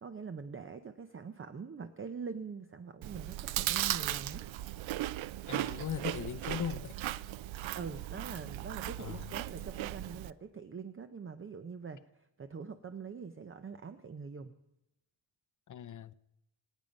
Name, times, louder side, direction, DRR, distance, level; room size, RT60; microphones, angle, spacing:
voice 1, 0.0-4.5 7.7-12.0 12.4-14.6, right 5 dB, 25° right, 0.6 m, -44 dB
Chewing mastication, 3.0-10.3, right 14 dB, 70° right, 0.5 m, -37 dB
voice 2, 5.5-7.0 9.0-9.3 15.7-16.1, left 9 dB, 40° left, 0.6 m, -39 dB
26.5 x 9.2 x 5.3 m
wide cardioid pair, 160°, 48 cm